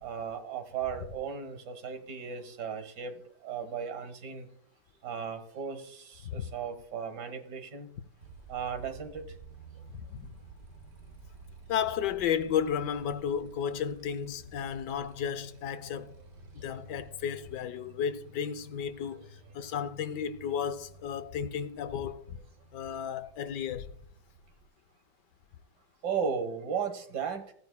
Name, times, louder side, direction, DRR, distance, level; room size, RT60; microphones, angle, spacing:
voice 1, 0.0-4.5 5.0-7.9 8.5-9.4 16.6-16.7 26.0-27.5, right 6 dB, 75° right, 2.0 m, -36 dB
Motorcycle, 8.2-24.7, right 4 dB, 55° right, 1.6 m, -53 dB
voice 2, 9.9-10.3 11.7-16.1 16.5-19.3 19.5-22.4 22.7-23.9, left 8 dB, 80° left, 1.3 m, -33 dB
15.5 x 9.4 x 2.2 m
omnidirectional pair, 1.8 m